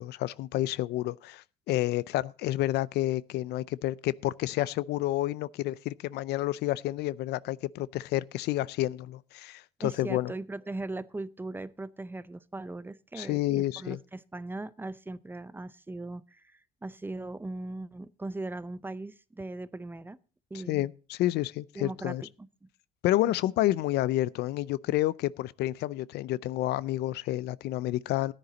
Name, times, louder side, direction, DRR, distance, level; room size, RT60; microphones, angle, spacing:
voice 1, 0.0-10.3 13.1-14.0 20.7-22.2 23.0-28.3, left 15 dB, 75° left, 0.5 m, -29 dB
voice 2, 9.8-20.2 20.5-20.9 21.8-22.7, right 2 dB, 10° right, 0.6 m, -39 dB
14.0 x 10.0 x 3.9 m
cardioid pair, 110°, 17 cm